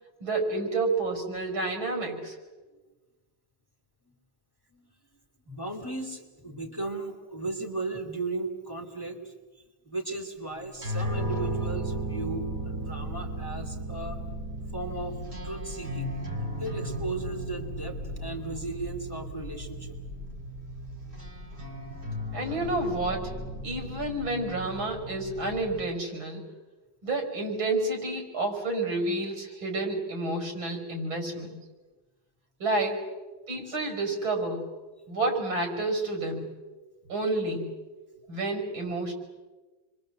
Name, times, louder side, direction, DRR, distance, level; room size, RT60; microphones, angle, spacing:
voice 1, 0.2-2.4 22.3-23.3 23.6-26.4 27.0-31.5 32.6-33.0 33.5-34.7 35.1-36.5 37.1-37.7 38.3-39.1, right 2 dB, 85° right, 4 dB, 6.2 m, -29 dB
voice 2, 5.5-9.3 9.8-14.2 14.7-16.2 16.6-20.0 22.2-22.4 33.7-33.8, right 2 dB, 10° left, 3 dB, 2.7 m, -36 dB
sound 1, 10.7-25.8, right 1 dB, 30° right, 3.4 m, -35 dB
28.5 x 23.0 x 7.8 m, 1.2 s
omnidirectional pair, 2.2 m